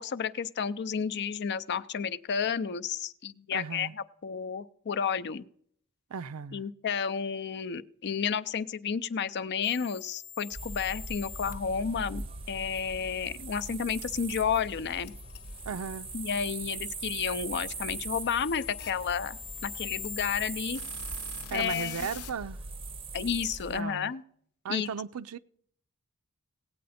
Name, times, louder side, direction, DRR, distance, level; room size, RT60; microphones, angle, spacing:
voice 1, 0.0-3.9 4.2-5.4 6.5-15.1 16.1-20.8 21.5-22.1 23.1-24.2 24.7-24.9, left 7 dB, 50° left, 0.5 m, -31 dB
voice 2, 3.5-3.9 6.1-6.6 15.7-16.1 21.5-22.6 23.7-24.1 24.6-25.4, right 6 dB, 70° right, 0.5 m, -36 dB
sound 1, 9.6-11.5 14.0-22.3, left 9 dB, 80° left, 0.9 m, -45 dB
sound 2, 10.5-23.8, right 4 dB, 25° right, 0.6 m, -41 dB
17.5 x 8.5 x 4.2 m
head